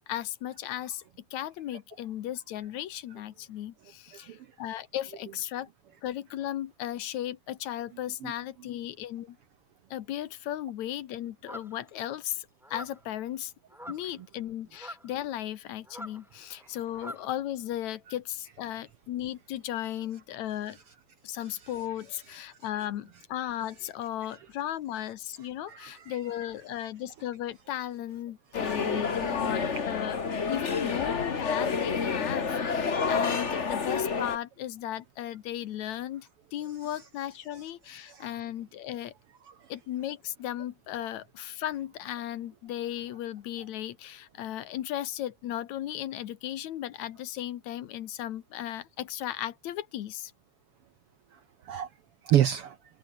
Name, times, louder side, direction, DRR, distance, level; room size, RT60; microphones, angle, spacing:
voice 1, 0.1-1.0 1.3-5.7 6.0-9.4 9.9-13.5 13.9-20.8 21.2-30.2 30.5-39.1 39.7-50.3, left 12 dB, 70° left, 2.4 m, -36 dB
voice 2, 4.1-4.5 8.2-8.3 21.4-21.5 25.6-26.2 28.6-28.8 33.0-33.1 38.1-38.3 39.5-39.7 51.3-51.9 52.2-52.8, right 11 dB, 65° right, 1.5 m, -30 dB
sound 1, 11.5-11.9 12.6-13.1 13.7-14.1 14.7-15.1 15.9-17.3, equal, ahead, 6.8 m, -44 dB
sound 2, 28.5-34.4, left 5 dB, 35° left, 1.3 m, -29 dB
omnidirectional pair, 3.5 m